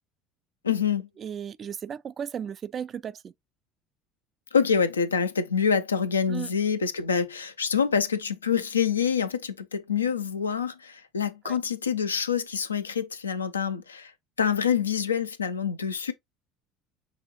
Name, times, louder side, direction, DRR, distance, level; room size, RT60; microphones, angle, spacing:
voice 1, 0.6-1.1 4.5-14.1 14.4-16.1, left 7 dB, 85° left, 0.6 m, -26 dB
voice 2, 1.2-3.3 6.3-6.5 11.4-11.6, right 8 dB, 40° right, 0.3 m, -35 dB
6.3 x 2.5 x 2.9 m
figure-of-eight pair, 65°, 0 cm